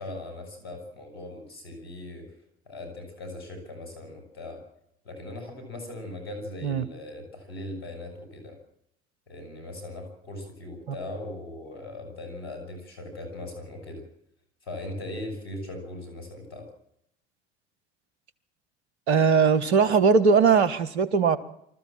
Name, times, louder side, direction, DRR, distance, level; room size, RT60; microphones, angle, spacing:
voice 1, 0.0-2.3 2.7-4.6 5.0-8.6 9.3-14.0 14.6-16.7, left 1 dB, 90° left, 5 dB, 6.3 m, -39 dB
voice 2, 19.1-21.4, right 5 dB, 85° right, 14 dB, 1.5 m, -20 dB
25.5 x 14.5 x 7.4 m, 0.75 s
hypercardioid pair, 55°, 32 cm